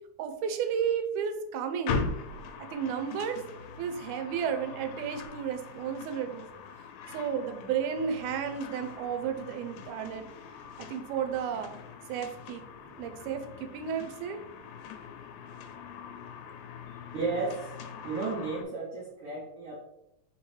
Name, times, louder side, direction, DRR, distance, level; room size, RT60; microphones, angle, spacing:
voice 1, 0.2-2.1 2.6-3.4 3.8-6.5 7.1-10.3 10.8-11.7 12.1-12.7 13.0-14.4, right 7 dB, 90° right, 7 dB, 2.1 m, -33 dB
sound 1, 1.9-18.6, left 5 dB, 80° left, 1.7 m, -41 dB
voice 2, 17.1-19.8, right 4 dB, 70° right, -4 dB, 1.3 m, -34 dB
4.3 x 3.9 x 3.1 m, 0.83 s
omnidirectional pair, 3.5 m